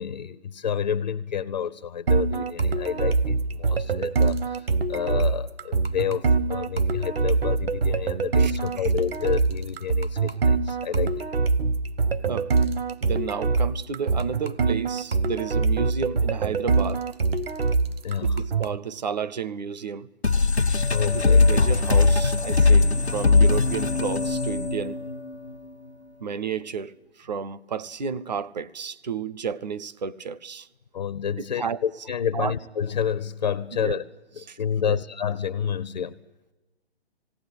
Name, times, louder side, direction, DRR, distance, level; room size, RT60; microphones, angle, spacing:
voice 1, 0.0-11.3 18.0-18.4 20.9-21.4 30.9-34.0 34.4-36.2, left 8 dB, 45° left, 0.7 m, -29 dB
sound 1, 2.1-18.8, right 4 dB, 65° right, 0.9 m, -24 dB
voice 2, 13.0-17.0 18.2-20.1 21.1-25.0 26.2-30.7 31.4-31.8 32.3-32.5 33.8-34.0 34.5-34.6 34.9-35.0, right 6 dB, 45° right, 0.6 m, -32 dB
sound 2, 20.2-25.5, left 3 dB, 85° left, 1.2 m, -20 dB
19.0 x 17.5 x 10.0 m
figure-of-eight pair, 135°, 32 cm